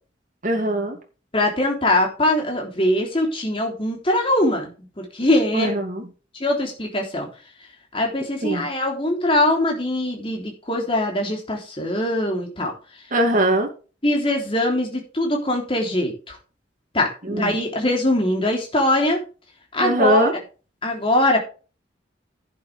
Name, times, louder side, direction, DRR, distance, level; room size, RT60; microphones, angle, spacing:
voice 1, 0.4-1.0 5.5-6.1 8.4-8.7 13.1-13.7 17.2-17.6 19.8-20.3, right 1 dB, 45° right, 3 dB, 2.5 m, -21 dB
voice 2, 1.3-4.7 5.0-5.7 6.3-7.3 7.9-12.7 14.0-16.4 16.9-19.2 19.7-20.3 20.8-21.4, left 1 dB, 30° left, 1 dB, 3.4 m, -22 dB
11.0 x 9.4 x 3.4 m, 0.35 s
head